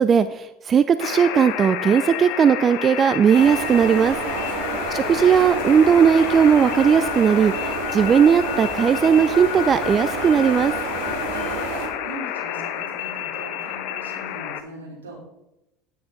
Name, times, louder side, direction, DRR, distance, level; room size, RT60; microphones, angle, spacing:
voice 1, 0.0-4.2 4.9-10.7, right 7 dB, 35° right, 13 dB, 0.4 m, -17 dB
sound 1, 1.0-14.6, left 11 dB, 60° left, 0.8 m, -30 dB
sound 2, 3.3-11.9, right 3 dB, 65° right, 3.2 m, -29 dB
voice 2, 4.3-4.8 10.9-15.2, right 1 dB, 80° right, -3 dB, 3.5 m, -41 dB
9.3 x 9.3 x 3.9 m, 0.89 s
hypercardioid pair, 75°, 0 cm